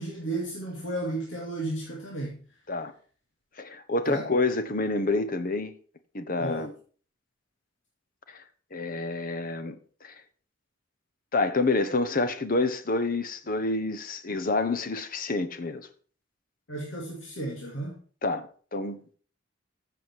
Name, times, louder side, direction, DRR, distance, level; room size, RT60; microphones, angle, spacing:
voice 1, 0.0-2.4 4.0-4.3 6.4-6.7 16.7-18.0, right 1 dB, 75° left, 2.5 m, -33 dB
voice 2, 3.6-5.7 6.1-6.7 8.3-8.4 8.7-10.1 11.3-15.9 18.2-19.0, left 3 dB, 50° left, 1.0 m, -28 dB
14.0 x 7.2 x 4.7 m
head